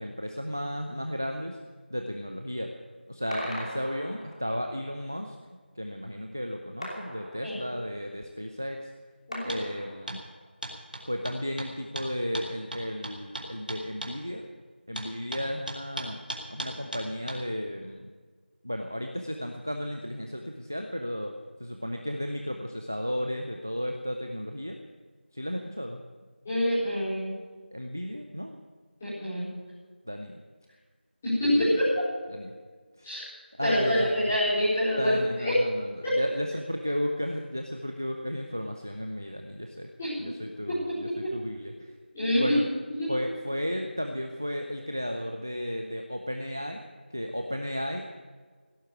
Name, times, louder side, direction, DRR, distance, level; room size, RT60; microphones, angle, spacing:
voice 1, 0.0-1.6 1.9-2.7 3.1-5.4 5.8-8.9 9.4-10.2 11.1-14.4 14.9-16.2 16.5-18.1 18.6-21.3 21.6-24.8 25.3-26.0 27.7-28.6 30.1-30.3 31.5-31.9 32.3-32.5 33.0-33.1 33.6-34.3 35.0-39.9 40.2-41.9 42.3-42.7 43.1-48.1, equal, 15° right, 4 dB, 0.5 m, -34 dB
sound 1, 3.3-4.7 6.8-8.0 9.3-10.5, equal, 35° left, 2.9 m, -40 dB
sound 2, 9.5-9.6 10.1-10.2 10.6-14.2 15.0-17.4, right 1 dB, 50° right, 2.5 m, -37 dB
voice 2, 26.4-27.4 29.0-29.5 31.2-31.9 33.0-33.2 33.6-35.5 36.0-36.2 40.0-40.1 41.2-41.3 42.1-42.6 43.0-43.1, equal, 10° left, -14 dB, 4.5 m, -26 dB
16.5 x 8.0 x 9.1 m, 1.5 s
figure-of-eight pair, 180°, 6 cm